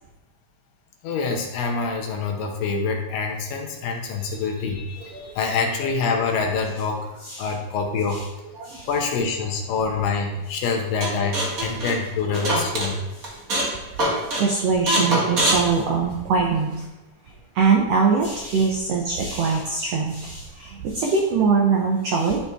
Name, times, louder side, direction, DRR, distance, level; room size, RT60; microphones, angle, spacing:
voice 1, 1.0-7.0 7.4-8.3 8.9-13.0, left 4 dB, 75° left, 2 dB, 2.6 m, -26 dB
voice 2, 5.0-5.3 7.2-7.5 8.1-8.2 8.5-8.9 13.3-13.4 13.9-16.8 17.5-22.4, right 5 dB, 85° right, 1 dB, 1.4 m, -23 dB
sound 1, 11.0-12.9 13.2-13.7 14.0-14.4 14.9-16.5, right 1 dB, 40° right, 1.2 m, -23 dB
11.5 x 4.2 x 3.5 m, 1.0 s
omnidirectional pair, 4.0 m